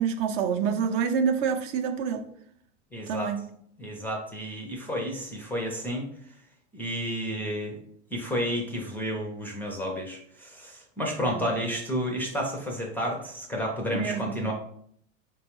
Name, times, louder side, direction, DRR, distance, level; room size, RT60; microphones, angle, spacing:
voice 1, 0.0-2.2 3.1-3.4 11.2-11.5 13.9-14.3, right 6 dB, 45° right, 6 dB, 0.5 m, -27 dB
voice 2, 2.9-3.3 3.8-6.1 6.7-7.8 8.1-14.5, equal, 5° left, 0 dB, 0.4 m, -31 dB
4.5 x 2.3 x 3.0 m, 0.65 s
hypercardioid pair, 110°, 36 cm